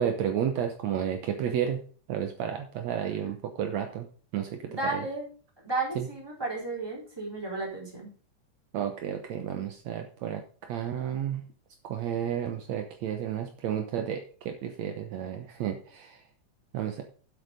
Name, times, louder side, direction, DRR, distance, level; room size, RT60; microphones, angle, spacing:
voice 1, 0.0-1.8 2.1-4.1 4.3-4.6 4.9-5.0 6.0-6.1 8.7-11.4 11.8-14.2 14.5-16.2 16.7-17.0, right 9 dB, 70° right, 5 dB, 2.2 m, -31 dB
voice 2, 4.7-5.3 5.6-8.1, right 3 dB, 10° right, -3 dB, 3.8 m, -33 dB
8.3 x 8.2 x 5.1 m, 0.41 s
omnidirectional pair, 3.4 m